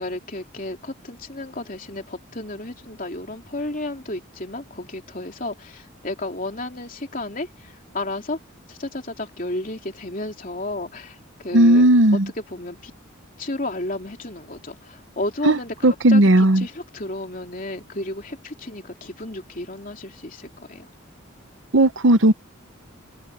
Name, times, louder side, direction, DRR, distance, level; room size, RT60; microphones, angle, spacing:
voice 1, 0.0-8.4 8.7-12.9 13.4-20.9, left 2 dB, 40° left, 3.2 m, -33 dB
voice 2, 11.5-12.3 15.4-15.6 15.8-16.6 21.7-22.3, right 1 dB, 60° right, 1.0 m, -15 dB
open air
head